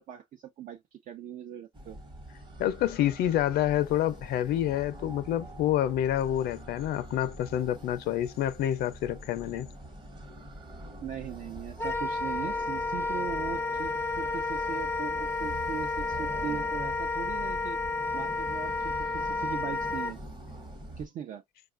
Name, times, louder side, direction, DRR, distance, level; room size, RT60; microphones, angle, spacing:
voice 1, 0.0-2.0 11.0-17.8 18.1-20.2 21.0-21.4, right 9 dB, 50° right, 0.4 m, -40 dB
sound 1, 1.7-21.1, right 1 dB, 25° right, 1.0 m, -44 dB
voice 2, 2.6-9.7, left 12 dB, 70° left, 0.4 m, -28 dB
Wind instrument woodwind instrument, 11.8-20.1, left 3 dB, 15° left, 0.5 m, -31 dB
4.7 x 2.3 x 2.4 m
cardioid pair, 110°, 17 cm